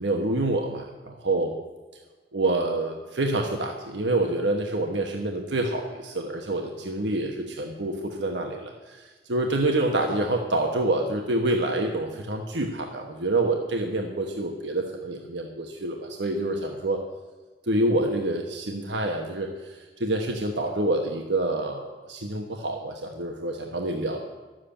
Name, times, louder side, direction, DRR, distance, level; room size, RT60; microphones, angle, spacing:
voice 1, 0.0-1.5 2.3-17.0 17.7-24.2, right 2 dB, 90° right, 2 dB, 1.2 m, -27 dB
12.0 x 7.7 x 8.8 m, 1.3 s
head